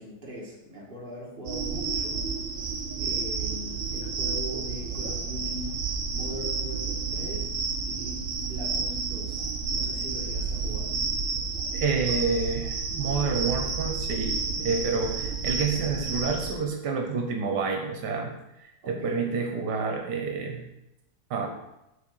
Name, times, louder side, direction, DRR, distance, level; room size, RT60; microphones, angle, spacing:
voice 1, 0.0-2.2 2.9-5.7 6.1-7.5 7.8-8.2 8.5-9.4 9.7-10.9 18.8-19.2, equal, 35° right, -4 dB, 1.8 m, -40 dB
sound 1, 1.5-16.5, right 4 dB, 60° right, 1.0 m, -30 dB
voice 2, 11.7-18.3 18.6-20.6 21.3-21.5, right 5 dB, 85° right, 2 dB, 1.4 m, -29 dB
6.3 x 3.8 x 5.4 m, 0.91 s
omnidirectional pair, 1.7 m